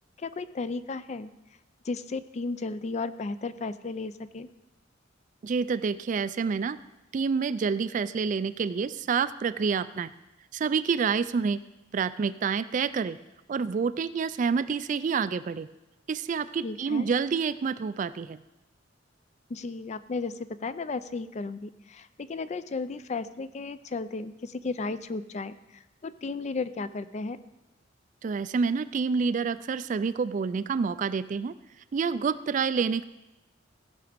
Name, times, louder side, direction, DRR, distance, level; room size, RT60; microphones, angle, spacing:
voice 1, 0.2-1.3 1.8-4.5 16.6-17.1 19.5-20.3 20.6-27.4, left 3 dB, 35° left, 13 dB, 0.4 m, -34 dB
voice 2, 5.4-6.8 7.1-10.1 10.5-11.6 11.9-13.2 13.5-15.7 16.1-18.4 28.2-31.6 31.9-33.0, right 5 dB, 40° right, 14 dB, 0.3 m, -28 dB
15.5 x 6.1 x 5.1 m, 0.99 s
head